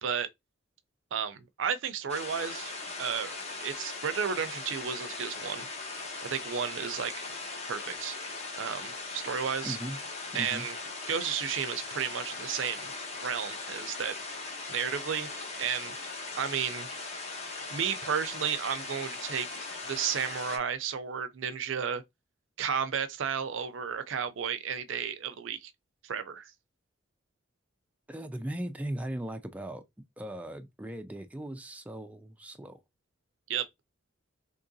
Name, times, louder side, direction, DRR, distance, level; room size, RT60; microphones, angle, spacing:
voice 1, 1.1-2.7 3.0-3.3 3.6-5.7 6.2-7.2 7.7-8.2 8.6-9.8 10.3-10.7 11.1-12.9 13.2-14.2 14.7-16.9 17.7-19.6 19.9-22.0 22.6-25.7 26.0-26.5 33.5-33.7, right 7 dB, 65° right, 0.5 m, -33 dB
sound 1, 2.1-20.6, left 3 dB, 35° left, 1.0 m, -39 dB
voice 2, 9.6-10.0 10.3-10.7 28.1-29.8 30.2-32.8, right 1 dB, 5° right, 0.3 m, -38 dB
3.7 x 2.9 x 2.7 m
head